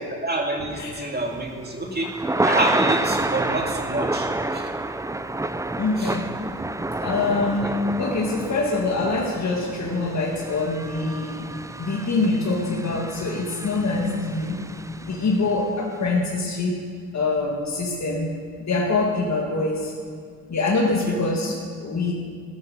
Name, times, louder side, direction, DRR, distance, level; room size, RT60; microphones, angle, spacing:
voice 1, 0.0-2.1 2.4-4.7 6.0-6.1 7.6-7.8 21.1-21.2, right 1 dB, 30° right, 1 dB, 2.5 m, -27 dB
Thunder / Rain, 1.3-15.5, right 2 dB, 10° right, 0.4 m, -29 dB
voice 2, 5.8-6.3 7.0-11.5 11.8-14.6 15.0-16.7 17.1-19.9 20.5-22.1, left 3 dB, 50° left, -2 dB, 2.0 m, -24 dB
15.0 x 8.4 x 6.6 m, 2.1 s
cardioid pair, 70°, 35 cm